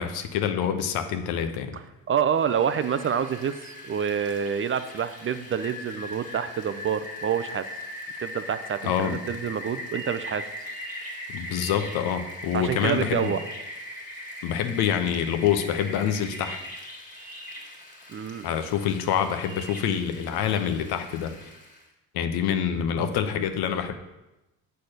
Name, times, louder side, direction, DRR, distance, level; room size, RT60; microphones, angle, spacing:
voice 1, 0.0-1.8 8.8-9.2 11.3-13.3 14.4-16.6 18.4-21.5 22.1-23.9, left 8 dB, 70° left, 8 dB, 0.9 m, -26 dB
voice 2, 2.1-7.7 8.2-10.4 12.5-13.4 18.1-18.4, right 8 dB, 35° right, 12 dB, 0.5 m, -27 dB
Rain, 2.3-21.8, left 1 dB, 20° left, 1.8 m, -40 dB
6.6 x 4.2 x 6.5 m, 0.98 s
supercardioid pair, 70°, 39 cm